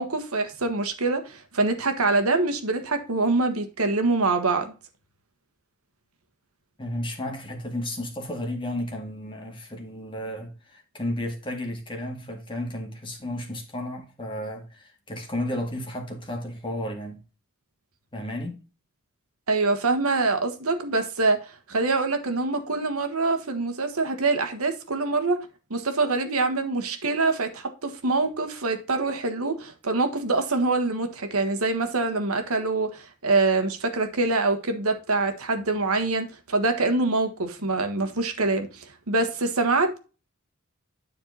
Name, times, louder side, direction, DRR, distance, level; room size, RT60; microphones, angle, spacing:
voice 1, 0.0-4.7 19.5-25.4 25.7-40.0, right 3 dB, 70° right, 1.4 m, -25 dB
voice 2, 6.8-17.2 18.1-18.6, left 1 dB, 25° left, 2.0 m, -33 dB
10.0 x 4.5 x 4.1 m
head